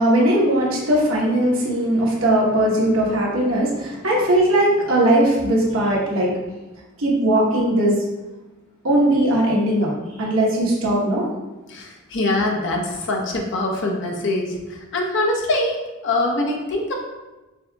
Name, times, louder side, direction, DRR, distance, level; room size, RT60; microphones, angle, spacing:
voice 1, 0.0-6.4 7.0-8.0 8.8-9.9 10.2-11.2, right 1 dB, 70° right, -4 dB, 1.1 m, -19 dB
voice 2, 11.7-14.6 14.9-15.8 16.0-16.9, left 2 dB, 60° left, 0 dB, 0.7 m, -23 dB
6.2 x 2.8 x 2.3 m, 1.1 s
head